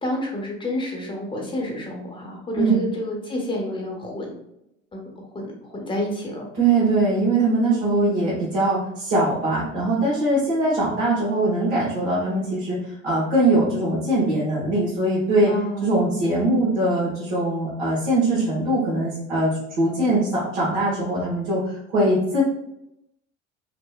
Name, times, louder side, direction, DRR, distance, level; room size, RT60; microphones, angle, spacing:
voice 1, 0.0-4.3 4.9-6.5 7.7-8.1 15.5-16.3, left 1 dB, 15° left, -2 dB, 0.8 m, -30 dB
voice 2, 6.6-15.5 15.8-22.4, right 2 dB, 65° right, -9 dB, 1.2 m, -21 dB
3.0 x 2.0 x 2.3 m, 0.81 s
hypercardioid pair, 70°, 39 cm